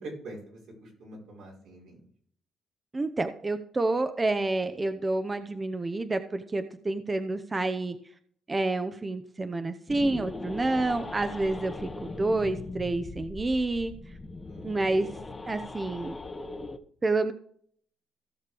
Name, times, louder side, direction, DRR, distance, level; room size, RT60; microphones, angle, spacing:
voice 1, 0.0-1.9 14.4-14.7, right 2 dB, 85° right, -2 dB, 4.9 m, -44 dB
voice 2, 2.9-8.0 8.5-13.9 14.6-15.1 15.5-16.2 17.0-17.3, right 2 dB, 25° right, 9 dB, 0.8 m, -29 dB
sound 1, 9.9-16.8, left 3 dB, 25° left, 1.0 m, -40 dB
16.5 x 6.6 x 3.5 m, 0.62 s
cardioid pair, 100°, 0 cm